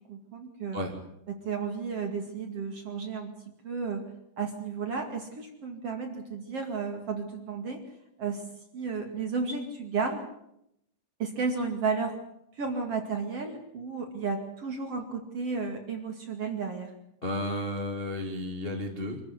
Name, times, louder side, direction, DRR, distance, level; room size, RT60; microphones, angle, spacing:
voice 1, 0.1-0.8 1.3-3.3 3.6-4.0 4.4-7.8 8.2-8.4 8.7-10.2 11.2-12.2 12.6-16.9, right 5 dB, 40° right, 3 dB, 2.6 m, -33 dB
voice 2, 17.2-19.2, left 1 dB, 25° left, 2 dB, 1.1 m, -32 dB
26.0 x 14.0 x 9.7 m, 0.79 s
omnidirectional pair, 5.4 m